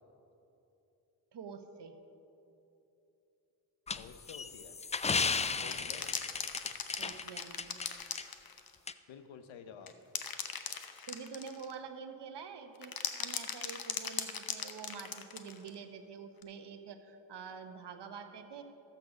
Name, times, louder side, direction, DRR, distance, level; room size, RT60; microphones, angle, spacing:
voice 1, 1.3-1.9 5.4-5.8 7.0-7.8 11.1-18.6, right 6 dB, 60° right, 7 dB, 1.0 m, -47 dB
sound 1, 3.9-7.9 8.2-8.3 8.9-9.0, left 5 dB, 15° left, 0.3 m, -34 dB
voice 2, 4.0-4.7 5.5-6.1 9.1-9.9, left 7 dB, 75° left, 9 dB, 0.8 m, -50 dB
sound 2, 5.6-8.8 9.9-11.7 12.8-15.7 16.4-16.5, left 7 dB, 50° left, 0.9 m, -39 dB
12.5 x 7.8 x 4.9 m, 2.9 s
supercardioid pair, 40°, 47 cm